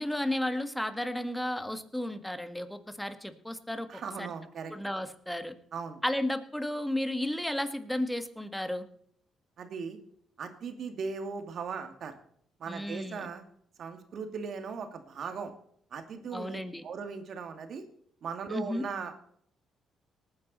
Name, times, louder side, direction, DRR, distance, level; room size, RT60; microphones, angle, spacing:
voice 1, 0.0-3.9 4.2-4.3 4.7-5.5 6.0-8.9 12.7-13.3 16.3-16.8 18.5-18.8, left 1 dB, 5° left, 9 dB, 1.7 m, -33 dB
voice 2, 3.9-4.7 5.7-6.0 9.6-10.0 10.4-12.2 12.6-13.4 13.8-15.5 15.9-17.8 18.2-19.2, right 5 dB, 60° right, 7 dB, 2.4 m, -38 dB
19.5 x 9.5 x 4.2 m, 0.64 s
cardioid pair, 90°, 0 cm